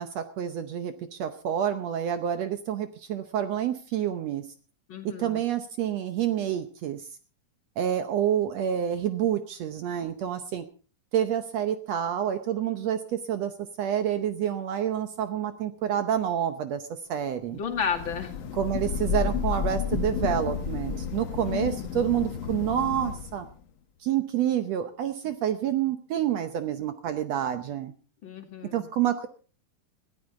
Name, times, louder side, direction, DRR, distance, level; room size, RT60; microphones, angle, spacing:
voice 1, 0.0-4.5 5.2-7.1 7.8-10.6 11.1-13.5 13.8-17.6 18.5-23.5 24.0-27.9 28.7-29.3, right 10 dB, 70° right, 9 dB, 1.6 m, -28 dB
voice 2, 4.9-5.4 17.5-18.3 21.5-21.9 28.2-28.9, left 6 dB, 40° left, 4 dB, 2.7 m, -33 dB
Thunder / Rain, 17.7-23.5, left 7 dB, 80° left, 1.0 m, -31 dB
20.5 x 14.0 x 3.7 m, 0.39 s
omnidirectional pair, 3.9 m